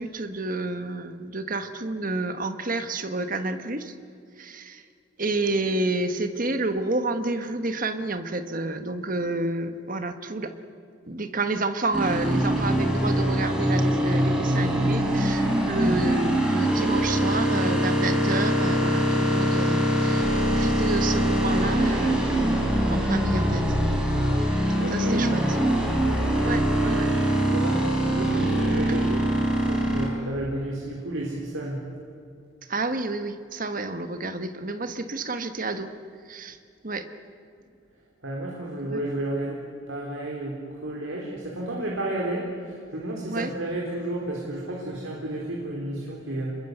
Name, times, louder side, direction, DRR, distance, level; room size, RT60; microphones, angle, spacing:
voice 1, 0.0-3.9 4.4-4.8 5.2-10.5 11.1-22.5 22.9-23.6 24.8-25.4 26.4-27.2 28.3-28.5 32.7-35.9 36.3-36.6 36.8-37.1 38.9-39.0 43.3-43.5, right 2 dB, 40° right, 8 dB, 1.5 m, -29 dB
sound 1, 11.9-30.1, right 1 dB, 5° right, 4.3 m, -23 dB
voice 2, 24.8-25.6 27.4-29.3 29.6-31.8 38.2-46.5, right 1 dB, 75° right, -2 dB, 4.2 m, -32 dB
27.0 x 22.0 x 8.1 m, 2.4 s
head